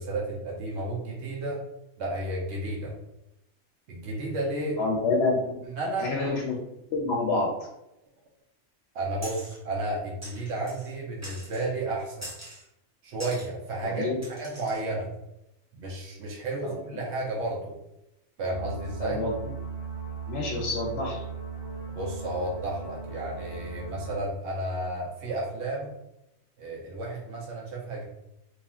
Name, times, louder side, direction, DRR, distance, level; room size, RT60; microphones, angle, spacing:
voice 1, 0.0-1.6 2.0-2.9 3.9-4.8 5.7-6.1 8.9-12.3 13.0-14.1 14.4-15.1 15.7-17.7 18.4-19.2 21.9-25.9 26.6-28.1, right 2 dB, 75° right, -3 dB, 1.0 m, -32 dB
voice 2, 4.8-5.6 6.0-6.6 6.9-7.5 13.8-14.2 16.6-16.8 19.0-19.5 20.3-21.2, left 3 dB, 70° left, -2 dB, 0.9 m, -28 dB
sound 1, 9.2-9.6 10.2-10.9 11.2-11.7 12.2-12.6 13.2-13.5 14.2-14.8, right 1 dB, 20° right, 0.6 m, -43 dB
sound 2, 18.5-24.1, right 6 dB, 60° right, 1.2 m, -38 dB
2.9 x 2.5 x 2.4 m, 0.87 s
omnidirectional pair, 1.2 m